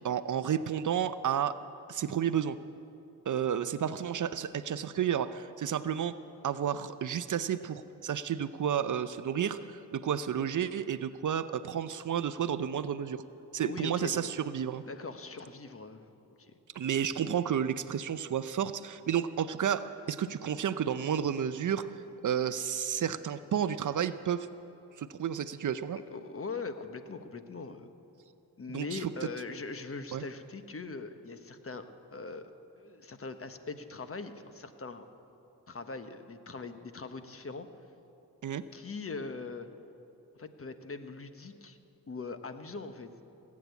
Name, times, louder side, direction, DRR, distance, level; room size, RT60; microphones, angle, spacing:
voice 1, 0.0-1.6 1.9-2.6 3.3-6.2 6.4-13.2 13.5-14.8 16.7-21.9 22.2-24.5 25.0-26.0 28.7-29.1 30.1-30.2 38.4-38.6, right 8 dB, 50° right, 13 dB, 0.6 m, -31 dB
voice 2, 13.6-14.4 14.8-16.1 16.4-16.5 26.1-27.9 28.6-35.0 35.7-37.7 38.7-39.7 40.3-41.8 42.1-43.1, left 4 dB, 35° left, 9 dB, 1.2 m, -41 dB
18.5 x 8.6 x 8.3 m, 2.8 s
cardioid pair, 60°, 38 cm